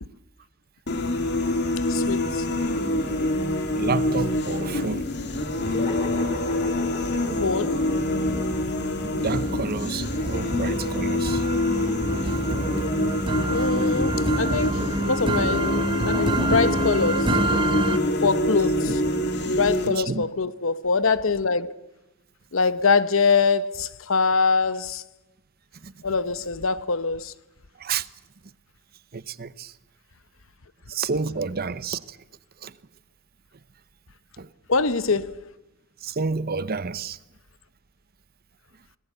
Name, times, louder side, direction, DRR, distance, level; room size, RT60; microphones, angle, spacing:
sound 1, 0.9-19.9, left 1 dB, 55° left, 2.6 m, -26 dB
voice 1, 1.9-2.4 7.4-7.8 13.4-17.3 18.2-18.9 19.5-21.7 22.5-25.0 26.0-27.3 34.7-35.4, left 4 dB, 75° left, 0.9 m, -24 dB
voice 2, 3.7-5.2 9.0-11.4 13.1-13.2 13.6-13.7 18.9-19.0 19.8-20.3 25.8-25.9 27.8-28.1 29.1-29.7 30.9-32.2 32.6-32.7 34.4-34.5 36.0-37.2, right 4 dB, 50° right, 0.8 m, -30 dB
sound 2, 5.6-10.4, left 2 dB, 40° left, 5.0 m, -37 dB
sound 3, 6.3-6.8 7.3-18.0, right 2 dB, 25° right, 1.0 m, -28 dB
25.5 x 19.0 x 8.1 m
head